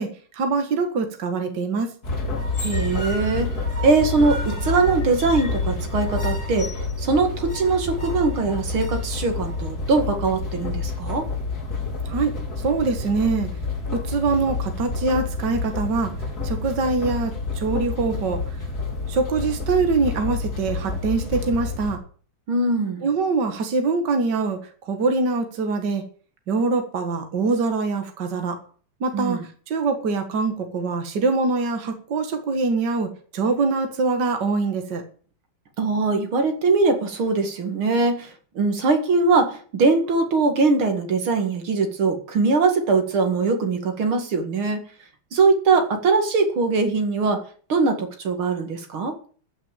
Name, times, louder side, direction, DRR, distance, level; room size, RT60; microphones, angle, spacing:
voice 1, 0.0-1.9 12.1-13.5 13.9-16.1 16.4-18.6 19.1-22.0 23.0-26.0 26.5-28.6 29.0-29.4 29.7-35.0, right 4 dB, 55° right, 6 dB, 2.2 m, -24 dB
sound 1, 2.0-22.0, left 3 dB, 45° left, 3.1 m, -28 dB
voice 2, 2.6-3.5 3.8-11.3 22.5-23.0 29.1-29.4 35.8-44.8 45.3-47.4 47.7-49.2, right 3 dB, 80° right, 5 dB, 2.9 m, -21 dB
14.0 x 6.1 x 9.0 m, 0.43 s
omnidirectional pair, 2.3 m